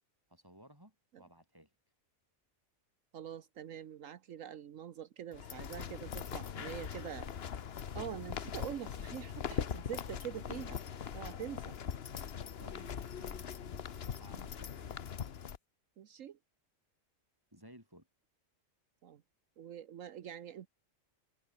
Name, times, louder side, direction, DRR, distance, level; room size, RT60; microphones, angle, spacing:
voice 1, 0.3-1.7 12.6-14.9 17.5-18.1, equal, 15° right, 7.4 m, -58 dB
voice 2, 3.1-7.3 7.9-10.8 11.1-11.7 16.0-16.4 19.0-19.2 19.6-20.7, right 10 dB, 75° right, 1.3 m, -45 dB
sound 1, 5.3-15.6, left 8 dB, 55° left, 1.1 m, -41 dB
omnidirectional pair, 1.4 m